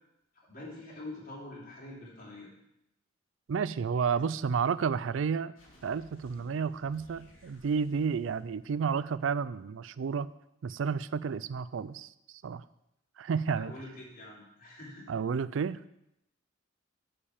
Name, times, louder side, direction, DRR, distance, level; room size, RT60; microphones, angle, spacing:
voice 1, 0.4-2.5 13.5-15.1, left 2 dB, 45° left, -4 dB, 3.2 m, -45 dB
voice 2, 3.5-5.5 5.8-10.3 10.6-12.1 12.4-12.6 13.2-13.7 15.1-15.8, right 6 dB, 70° right, 17 dB, 0.4 m, -31 dB
sound 1, 5.6-9.3, equal, 85° left, 2.3 m, -59 dB
8.7 x 5.1 x 7.2 m, 0.83 s
head